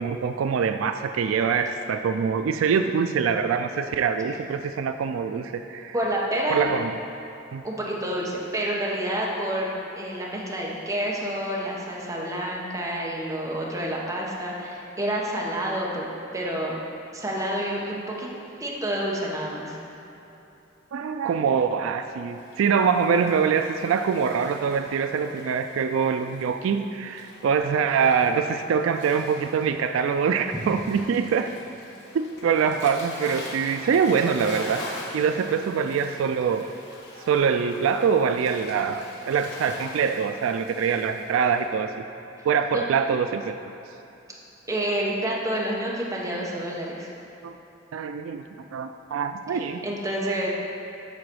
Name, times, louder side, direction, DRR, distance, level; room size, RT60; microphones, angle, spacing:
voice 1, 0.0-5.9 6.5-6.9 7.5-7.6 20.9-31.5 32.1-34.8 35.1-36.7 37.3-41.9 42.4-43.6 47.4-47.6 47.9-49.9, right 6 dB, 85° right, 7 dB, 0.3 m, -24 dB
voice 2, 5.9-6.6 7.6-9.7 10.0-16.1 16.3-16.8 17.1-18.3 18.6-19.8 42.7-42.8 44.7-47.1 49.5-50.5, right 1 dB, 15° right, -4 dB, 1.1 m, -28 dB
Waves surf, 22.2-41.7, left 1 dB, 65° left, 1.2 m, -44 dB
7.7 x 4.0 x 6.2 m, 3.0 s
head